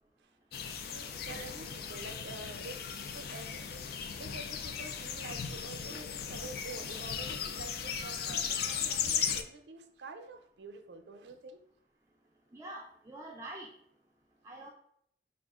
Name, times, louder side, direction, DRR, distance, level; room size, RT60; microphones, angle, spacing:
sound 1, 0.5-9.4, left 7 dB, 60° left, 0.4 m, -37 dB
voice 1, 1.1-3.7 4.2-11.6, right 3 dB, 80° right, 6 dB, 0.5 m, -48 dB
voice 2, 12.5-13.7 14.4-14.7, right 1 dB, 20° right, -1 dB, 0.4 m, -45 dB
5.0 x 2.4 x 3.5 m, 0.70 s
head